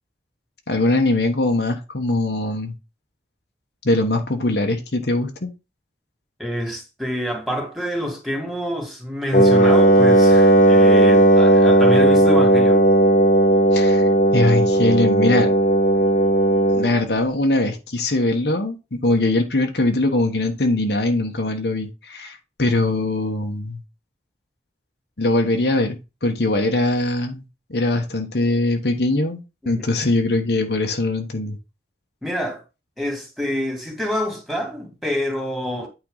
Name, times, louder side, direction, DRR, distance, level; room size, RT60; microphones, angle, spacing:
voice 1, 0.7-2.7 3.8-5.5 13.7-15.5 16.7-23.8 25.2-27.4 27.7-31.6, left 2 dB, 70° left, 1.2 m, -21 dB
voice 2, 6.4-12.8 29.6-29.8 32.2-32.6 33.0-35.9, equal, ahead, 2.6 m, -27 dB
Wind instrument woodwind instrument, 9.3-16.9, right 2 dB, 45° left, 0.9 m, -15 dB
9.1 x 4.6 x 4.0 m
head